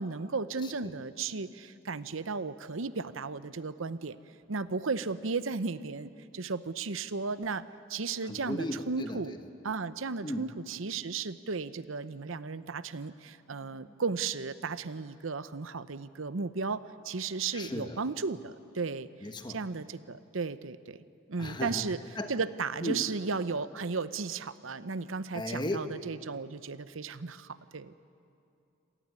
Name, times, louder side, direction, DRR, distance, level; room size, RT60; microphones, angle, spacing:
voice 1, 0.0-4.2 4.5-7.6 7.9-9.3 9.6-19.1 19.5-21.0 21.3-22.0 22.3-28.0, right 4 dB, 85° right, 14 dB, 0.8 m, -35 dB
voice 2, 0.6-0.9 1.7-1.8 8.2-9.4 10.2-10.5 13.6-13.9 17.5-18.0 19.2-19.6 21.4-22.3 22.8-23.0 25.3-25.9, left 1 dB, 20° left, 7 dB, 1.3 m, -36 dB
26.0 x 17.5 x 9.6 m, 2.6 s
head